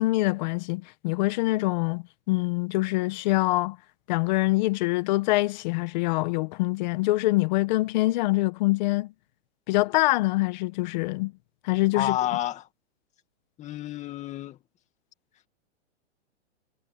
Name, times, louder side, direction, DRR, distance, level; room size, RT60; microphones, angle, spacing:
voice 1, 0.0-3.8 4.1-9.1 9.7-11.3 11.6-12.2, left 20 dB, 40° left, 1.4 m, -25 dB
voice 2, 11.9-12.7 13.6-14.6, left 12 dB, 20° left, 2.0 m, -29 dB
hypercardioid pair, 155°, 35 cm